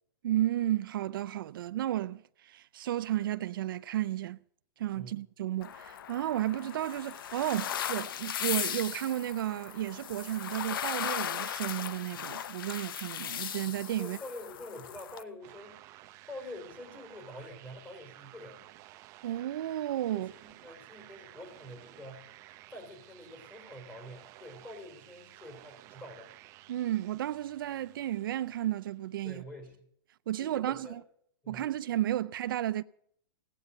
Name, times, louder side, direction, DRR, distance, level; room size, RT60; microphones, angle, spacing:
voice 1, 0.2-4.4 4.8-14.2 19.2-20.3 26.7-29.4 30.3-31.0 31.5-32.8, right 13 dB, 65° right, 0.5 m, -33 dB
sound 1, 5.6-15.2, left 10 dB, 70° left, 0.9 m, -37 dB
voice 2, 14.0-15.8 16.3-18.6 20.1-22.4 22.7-26.3 29.2-29.9 30.4-31.0 31.4-31.7, left 1 dB, 10° left, 4.3 m, -46 dB
sound 2, 15.4-29.1, right 16 dB, 25° right, 0.7 m, -54 dB
17.5 x 9.7 x 6.6 m
supercardioid pair, 165°, 12 cm